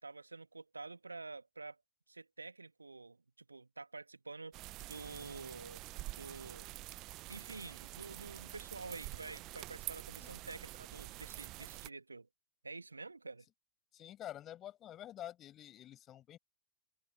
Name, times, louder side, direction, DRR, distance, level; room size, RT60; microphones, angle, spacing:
voice 1, 0.0-1.8 2.1-4.5 4.8-5.8 6.1-6.7 7.3-12.3 12.6-13.5, right 3 dB, 80° right, 1.9 m, -48 dB
sound 1, 4.5-11.9, right 20 dB, 40° right, 0.5 m, -47 dB
voice 2, 13.9-16.4, left 12 dB, 30° left, 6.2 m, -48 dB
open air
figure-of-eight pair, 90°, 0 cm